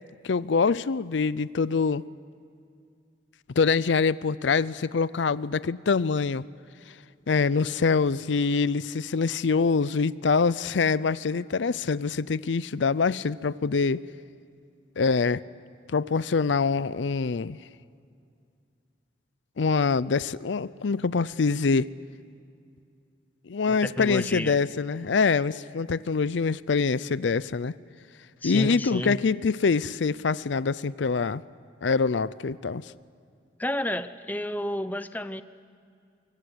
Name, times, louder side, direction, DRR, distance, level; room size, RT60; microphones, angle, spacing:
voice 1, 0.2-2.0 3.6-6.4 7.3-14.0 15.0-15.4 15.9-17.6 19.6-21.9 23.5-27.7 28.4-31.4 31.8-32.8, left 4 dB, 80° left, 18 dB, 0.5 m, -25 dB
voice 2, 23.7-24.6 28.4-29.2 33.6-35.4, left 1 dB, 10° left, 12 dB, 0.7 m, -31 dB
25.0 x 24.5 x 8.1 m, 2.4 s
head